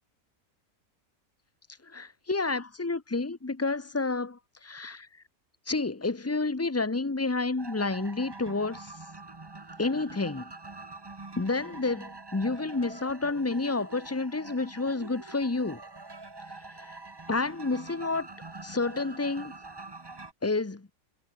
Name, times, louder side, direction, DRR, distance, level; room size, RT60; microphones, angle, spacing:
voice 1, 1.8-5.1 5.7-8.9 9.8-10.5 11.4-15.8 16.7-16.9 17.3-18.3 18.6-19.5 20.4-20.9, left 3 dB, 15° left, 0.6 m, -30 dB
sound 1, 7.6-20.3, right 3 dB, 20° right, 1.0 m, -45 dB
omnidirectional pair, 1.6 m